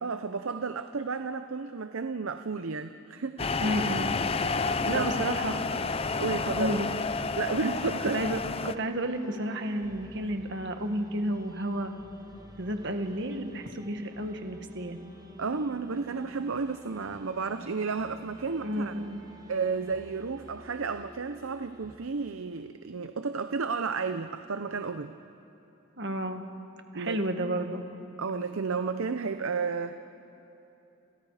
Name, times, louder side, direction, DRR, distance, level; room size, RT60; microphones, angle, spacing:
voice 1, 0.0-3.6 4.6-5.1 6.2-6.7 7.3-8.2 15.4-18.9 19.5-25.1 26.9-27.2 28.2-30.0, right 4 dB, 70° right, 9 dB, 0.7 m, -32 dB
sound 1, 3.4-8.8, left 4 dB, 25° left, 0.5 m, -30 dB
voice 2, 3.6-4.2 4.4-5.6 6.6-6.9 8.1-11.9 12.6-15.0 18.6-19.2 26.0-26.4 26.9-27.8, right 1 dB, 55° right, 5 dB, 1.8 m, -31 dB
sound 2, 4.9-22.0, equal, 15° right, 1.5 m, -51 dB
30.0 x 28.0 x 5.0 m, 2.9 s
head